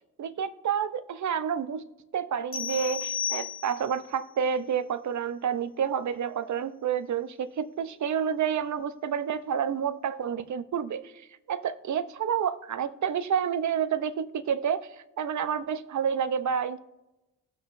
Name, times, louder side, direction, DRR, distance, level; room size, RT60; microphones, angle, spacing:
voice 1, 0.2-1.8 2.1-11.1 11.5-14.9 15.2-16.8, right 8 dB, 50° right, 11 dB, 0.9 m, -29 dB
sound 1, 2.5-4.0, left 8 dB, 35° left, 2.1 m, -33 dB
17.5 x 6.2 x 2.7 m, 0.98 s
supercardioid pair, 50°, 36 cm